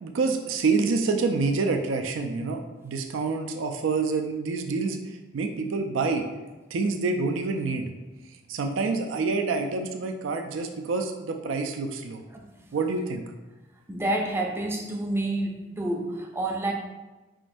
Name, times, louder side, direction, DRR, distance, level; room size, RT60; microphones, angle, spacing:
voice 1, 0.0-5.0 5.3-6.3 6.7-7.9 8.5-12.2 12.7-13.2, right 4 dB, 90° right, 5 dB, 0.4 m, -27 dB
voice 2, 13.9-16.7, right 1 dB, 15° right, 1 dB, 0.5 m, -28 dB
4.9 x 3.7 x 2.5 m, 1.2 s
head